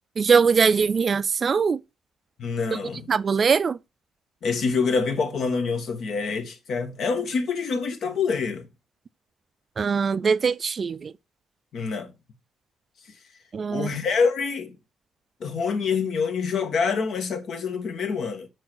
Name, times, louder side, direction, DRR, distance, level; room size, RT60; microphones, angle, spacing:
voice 1, 0.2-1.8 3.1-3.8 9.8-11.1 13.5-13.9, right 5 dB, 45° right, 0.3 m, -21 dB
voice 2, 2.4-3.1 4.4-8.7 11.7-12.1 13.1-13.2 13.7-14.8 15.4-18.5, left 5 dB, 65° left, 1.2 m, -26 dB
4.7 x 4.7 x 6.1 m
cardioid pair, 90°, 0 cm